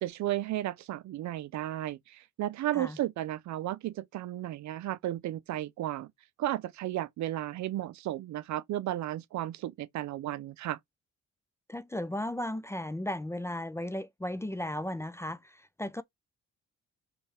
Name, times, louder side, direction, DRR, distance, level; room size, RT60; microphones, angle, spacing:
voice 1, 0.0-6.1 6.4-10.8, right 13 dB, 65° right, 0.5 m, -34 dB
voice 2, 11.7-16.0, left 1 dB, 10° left, 0.4 m, -35 dB
3.5 x 3.3 x 4.3 m
cardioid pair, 90°, 30 cm